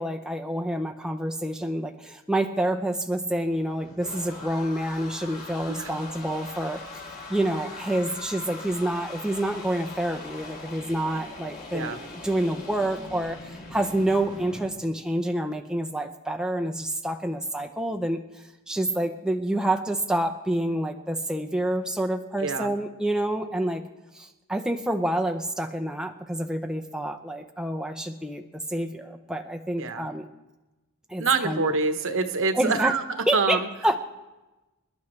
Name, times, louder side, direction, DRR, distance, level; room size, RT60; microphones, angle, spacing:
voice 1, 0.0-23.8 24.1-30.3 31.1-31.7 32.5-32.9 33.3-33.6 33.8-34.0, right 1 dB, 5° right, 4 dB, 0.6 m, -28 dB
sound 1, 3.4-14.7, left 3 dB, 45° left, 3.6 m, -41 dB
voice 2, 22.4-22.7 29.8-30.1 31.2-33.0 33.3-33.7, right 4 dB, 60° right, 8 dB, 1.1 m, -25 dB
26.5 x 11.5 x 3.2 m, 1.1 s
head